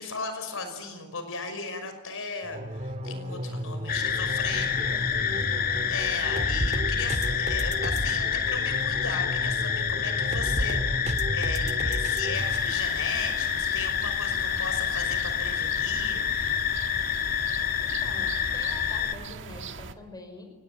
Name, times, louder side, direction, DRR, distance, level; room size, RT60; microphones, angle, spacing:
voice 1, 0.0-4.8 5.9-16.3, left 4 dB, 60° left, 8 dB, 5.8 m, -37 dB
sound 1, 2.4-12.6, equal, 30° right, 2.1 m, -32 dB
sound 2, 3.9-19.1, left 8 dB, 40° left, 1.9 m, -28 dB
voice 2, 4.8-5.9 17.8-20.5, left 2 dB, 15° left, 5 dB, 5.1 m, -46 dB
sound 3, 12.3-19.9, right 4 dB, 55° right, 1.7 m, -41 dB
29.0 x 20.0 x 9.0 m, 1.2 s
head